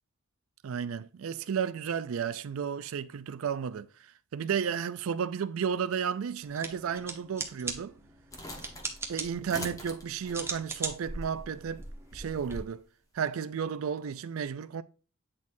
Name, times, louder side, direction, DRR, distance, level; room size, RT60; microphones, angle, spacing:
voice 1, 0.6-8.0 8.6-8.7 9.1-11.8 12.1-12.8 13.1-14.8, right 7 dB, 80° right, 0.4 m, -33 dB
sound 1, 6.4-12.5, right 4 dB, 10° right, 0.9 m, -41 dB
sound 2, 8.3-12.7, left 1 dB, 15° left, 1.0 m, -43 dB
8.8 x 4.2 x 2.6 m
head